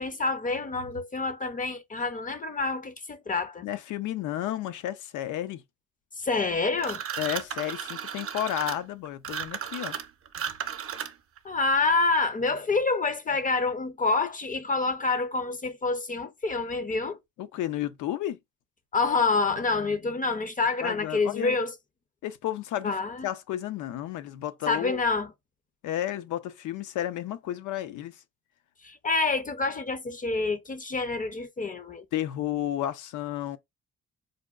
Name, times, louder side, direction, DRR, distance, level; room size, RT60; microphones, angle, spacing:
voice 1, 0.0-3.6 6.2-7.0 11.4-17.2 18.9-21.7 22.8-23.3 24.7-25.3 28.8-32.0, left 3 dB, 25° left, 0.5 m, -27 dB
voice 2, 3.6-5.6 7.2-9.9 17.4-18.4 20.8-21.6 22.2-22.9 23.2-25.0 25.8-28.2 32.1-33.6, left 12 dB, 80° left, 0.5 m, -32 dB
sound 1, 6.8-11.4, right 8 dB, 50° right, 0.6 m, -34 dB
5.0 x 2.2 x 2.3 m
cardioid pair, 90°, 30 cm